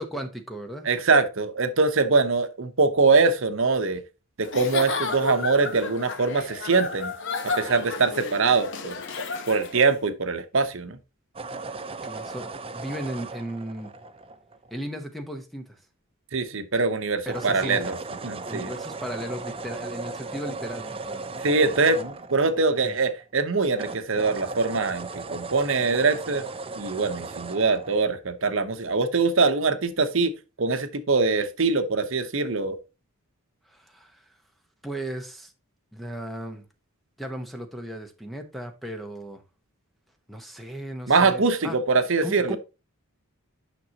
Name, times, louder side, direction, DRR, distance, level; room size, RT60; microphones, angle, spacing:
voice 1, 0.0-0.9 12.0-13.9 14.7-15.8 17.2-18.0 18.5-21.3 22.8-22.9 33.7-34.3 34.8-35.5 35.9-36.6 37.2-39.4 40.3-41.8 42.2-42.6, right 1 dB, ahead, 0.8 m, -36 dB
voice 2, 0.8-4.0 4.4-7.1 7.6-9.0 9.5-11.0 16.3-17.9 18.2-18.7 21.4-26.4 26.7-30.3 30.6-32.8 41.1-42.6, right 4 dB, 60° right, 0.9 m, -23 dB
Giggle / Chuckle chortle, 4.4-9.9, left 4 dB, 55° left, 1.0 m, -32 dB
sound 1, 11.3-14.8 17.2-23.4 23.7-28.0, right 3 dB, 25° right, 0.5 m, -37 dB
9.1 x 6.0 x 2.9 m
head